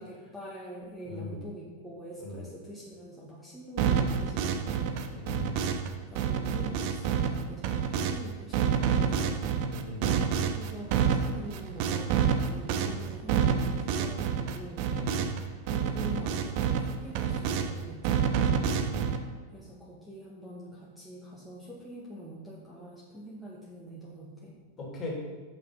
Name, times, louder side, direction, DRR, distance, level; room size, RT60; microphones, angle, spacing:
voice 1, 0.0-5.2 6.1-9.6 10.5-14.9 15.7-18.7 19.5-24.5, right 1 dB, ahead, -7 dB, 1.5 m, -44 dB
voice 2, 1.0-1.4 2.2-2.5 5.1-5.5 9.6-10.1 14.9-15.2 18.5-19.1 24.8-25.2, left 3 dB, 25° left, -3 dB, 2.8 m, -38 dB
sound 1, 3.8-5.9 6.2-8.2 8.5-15.4 15.7-17.7 18.0-19.2, right 7 dB, 45° right, 0.6 m, -28 dB
7.2 x 5.7 x 5.3 m, 1.3 s
figure-of-eight pair, 90°, 0 cm